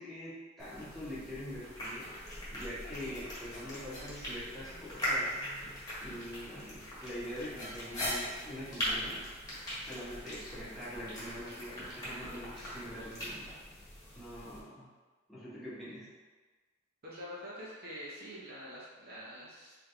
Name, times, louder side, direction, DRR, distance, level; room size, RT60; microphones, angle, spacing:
voice 1, 0.0-2.1 2.5-5.3 6.0-9.2 9.8-13.4 14.1-14.9 15.3-16.1, equal, ahead, -11 dB, 1.3 m, -44 dB
sound 1, 0.6-14.6, equal, 20° left, 1.3 m, -40 dB
voice 2, 17.0-19.8, equal, 50° right, -6 dB, 0.8 m, -45 dB
3.8 x 3.6 x 3.3 m, 1.3 s
head